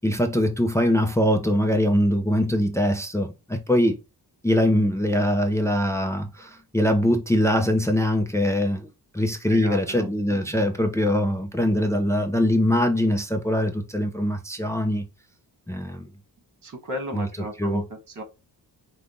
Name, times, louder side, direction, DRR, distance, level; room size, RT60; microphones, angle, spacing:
voice 1, 0.0-4.0 4.4-15.1 15.7-16.1 17.1-17.3 17.6-17.8, left 1 dB, 5° left, 0.5 m, -22 dB
voice 2, 9.5-10.6 16.6-18.2, right 1 dB, 45° right, 1.6 m, -35 dB
5.0 x 2.3 x 3.7 m
wide cardioid pair, 125°, 41 cm